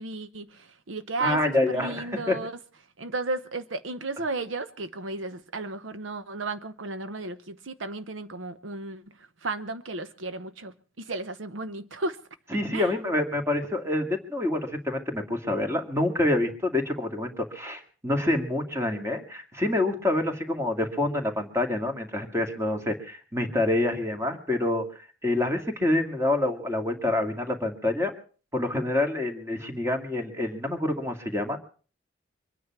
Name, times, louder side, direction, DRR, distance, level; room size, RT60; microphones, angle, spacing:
voice 1, 0.0-2.6 3.0-9.0 9.4-12.2 12.7-12.9, right 3 dB, 70° right, 0.8 m, -34 dB
voice 2, 1.2-2.4 12.5-24.9 25.2-28.1 28.5-31.6, left 1 dB, 15° right, 2.1 m, -27 dB
24.0 x 9.8 x 5.9 m
head